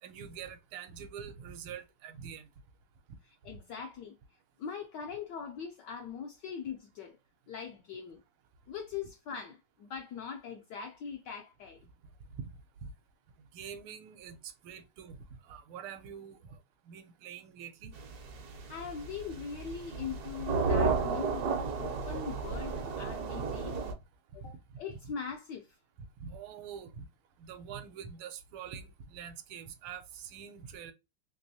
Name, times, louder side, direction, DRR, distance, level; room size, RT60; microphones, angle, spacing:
voice 1, 0.0-2.5 3.1-3.2 12.4-12.5 12.8-12.9 13.5-17.9 24.4-25.0 26.2-27.1 27.4-30.9, right 7 dB, 80° right, 1.4 m, -45 dB
voice 2, 3.2-4.2 4.6-7.2 7.5-8.2 8.7-11.8 18.5-23.7 24.3-25.7, left 6 dB, 80° left, 1.0 m, -41 dB
sound 1, 18.0-23.9, right 4 dB, 65° right, 1.0 m, -33 dB
3.4 x 3.0 x 2.6 m
omnidirectional pair, 2.4 m